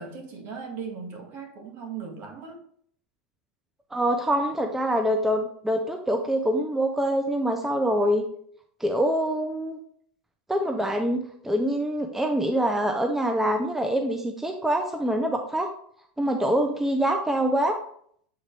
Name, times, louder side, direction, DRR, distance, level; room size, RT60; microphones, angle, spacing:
voice 1, 0.0-2.6, right 5 dB, 50° right, 2 dB, 1.7 m, -38 dB
voice 2, 3.9-8.2 8.8-9.8 10.5-15.7 16.2-17.7, equal, 5° right, 4 dB, 0.6 m, -25 dB
7.4 x 3.9 x 3.3 m, 0.63 s
hypercardioid pair, 115°, 5 cm